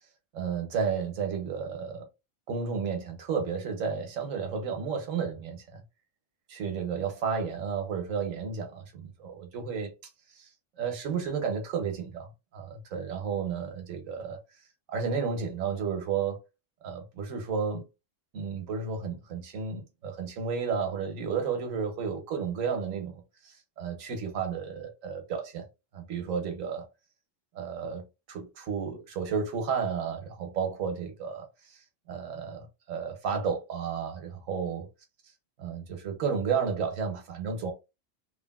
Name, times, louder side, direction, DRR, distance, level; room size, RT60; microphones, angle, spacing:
voice 1, 0.3-2.1 2.5-5.8 6.5-9.9 10.4-10.5 10.8-14.4 14.9-16.4 16.8-17.8 18.3-25.6 25.9-26.9 27.5-31.8 32.1-34.9 35.6-37.7, right 6 dB, 90° right, 1.2 m, -32 dB
3.2 x 2.5 x 2.3 m
omnidirectional pair, 1.3 m